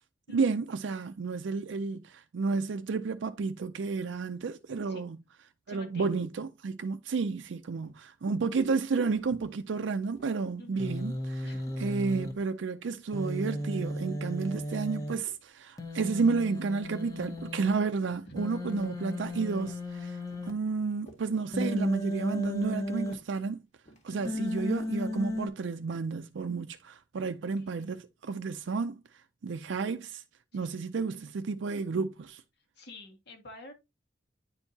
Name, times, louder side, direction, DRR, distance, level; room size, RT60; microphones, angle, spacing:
voice 1, 0.3-5.2 5.7-11.5 11.8-20.2 20.4-23.6 24.0-29.0 29.4-30.2 30.5-32.4, right 4 dB, 75° right, 0.4 m, -31 dB
voice 2, 5.7-6.2 10.6-10.9 11.4-11.9 18.3-18.4 24.1-24.5 27.6-28.0 30.5-30.7 32.8-33.7, left 1 dB, 60° left, 1.8 m, -49 dB
sound 1, 7.4-7.5 7.8-8.1 8.6-9.7 10.1-11.2 11.7-12.6 13.1-13.4 13.7-14.1 14.5-15.5 16.0-16.2 16.6-16.9 17.3-17.6 18.1-18.3 18.8-19.1 19.4-19.9 20.3-20.6 20.9-21.3 21.8-22.1 22.4-22.7 23.1-23.4 23.7-24.1 24.6-24.8 25.1-25.2, equal, 40° left, 1.7 m, -57 dB
Human voice, 10.8-12.3 13.1-15.1 15.8-17.7 18.4-20.5 21.5-23.1 24.3-25.5, left 1 dB, 20° left, 1.1 m, -34 dB
9.7 x 4.5 x 2.8 m
head